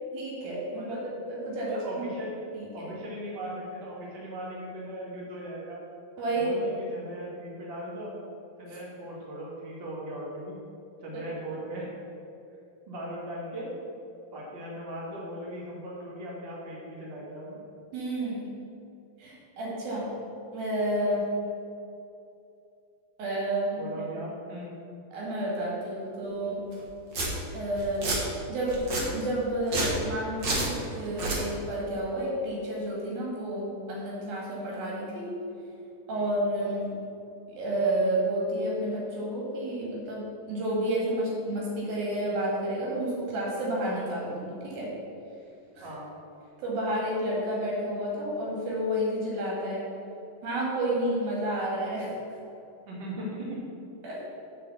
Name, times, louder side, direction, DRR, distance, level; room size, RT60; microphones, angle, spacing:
voice 1, 0.1-1.0 1.3-1.7 2.0-2.1 2.5-2.9 6.2-6.8 11.1-11.2 17.9-18.5 19.2-20.1 20.5-21.3 23.2-23.9 25.1-26.6 27.5-28.1 28.5-28.9 29.1-35.3 36.1-37.0 37.6-44.9 45.8-45.9 46.6-49.9 50.4-52.1 54.0-54.2, right 1 dB, 85° right, -5 dB, 4.0 m, -30 dB
voice 2, 1.7-2.4 2.7-5.8 6.3-8.1 8.6-10.6 11.0-11.9 12.9-13.7 14.3-17.6 23.7-24.7 36.1-36.3 45.8-46.1 52.8-53.6, right 1 dB, 30° right, -5 dB, 1.0 m, -38 dB
Domestic sounds home sounds, 26.7-26.8 27.1-27.3 27.8-28.2 28.7-29.0 29.6-30.0 30.4-30.7 31.1-31.4, right 2 dB, 55° right, 1.3 m, -29 dB
7.4 x 5.0 x 7.1 m, 2.7 s
omnidirectional pair, 4.1 m